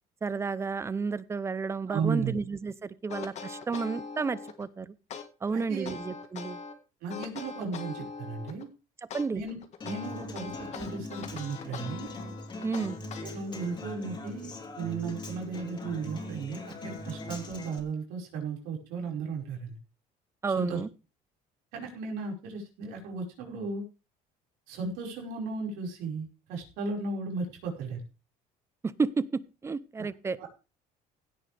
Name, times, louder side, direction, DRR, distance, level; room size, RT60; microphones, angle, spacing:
voice 1, 0.2-4.9 5.4-6.6 9.1-9.4 12.6-13.0 20.4-20.9 29.0-30.4, right 4 dB, 15° right, 17 dB, 0.7 m, -31 dB
voice 2, 1.9-2.3 5.5-5.9 7.0-8.7 9.3-9.6 9.8-12.1 13.2-19.8 20.5-20.8 21.7-23.8 24.7-28.0 30.0-30.1 30.4-30.5, right 4 dB, 85° right, 0 dB, 5.3 m, -35 dB
sound 1, 3.1-4.7 5.1-6.7 7.1-8.7 9.1-13.6, left 6 dB, 45° left, 1.7 m, -41 dB
Human voice / Acoustic guitar, 9.8-17.8, left 2 dB, 30° left, 3.5 m, -41 dB
16.5 x 9.8 x 3.5 m, 0.31 s
cardioid pair, 145°, 16 cm